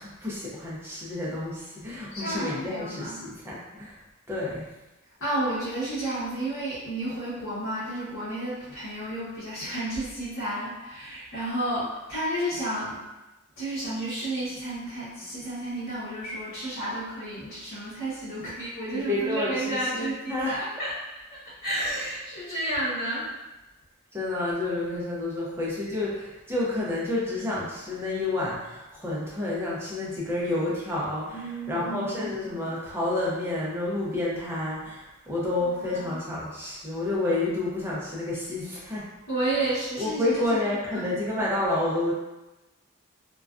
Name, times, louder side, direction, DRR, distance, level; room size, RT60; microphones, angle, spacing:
voice 1, 0.0-4.0 4.3-4.7 18.9-20.6 24.1-39.1 40.0-42.1, left 2 dB, 10° right, -6 dB, 0.5 m, -29 dB
voice 2, 2.1-3.2 5.2-13.1 13.6-20.9 21.4-23.3 31.3-32.3 35.6-36.2 39.3-40.6 40.9-41.1, right 1 dB, 70° left, -12 dB, 0.8 m, -31 dB
2.3 x 2.2 x 2.3 m, 1.0 s
head